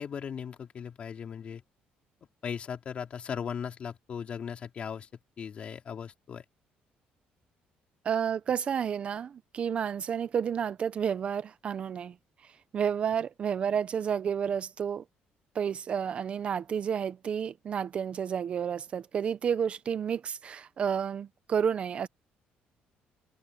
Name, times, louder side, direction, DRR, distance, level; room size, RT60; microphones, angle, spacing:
voice 1, 0.0-1.6 2.4-5.1 5.4-6.4, left 7 dB, 40° left, 3.4 m, -38 dB
voice 2, 8.0-12.1 12.7-15.0 15.5-22.1, right 7 dB, 35° right, 0.5 m, -30 dB
cardioid pair, 160°, 3 cm